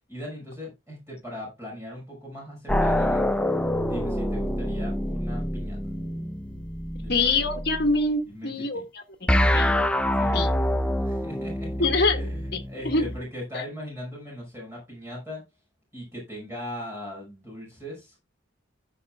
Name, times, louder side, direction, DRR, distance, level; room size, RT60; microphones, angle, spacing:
voice 1, 0.1-5.8 6.9-7.2 8.3-8.8 10.2-10.4 11.0-11.8 12.2-15.4 15.9-18.2, equal, 15° right, 5.7 m, -39 dB
sound 1, 2.7-8.0 9.3-13.2, left 1 dB, 5° left, 0.7 m, -26 dB
voice 2, 7.1-9.8 10.3-10.5 11.8-12.2 12.8-13.1 13.5-13.6, left 3 dB, 55° left, 1.9 m, -25 dB
15.0 x 6.6 x 2.3 m
head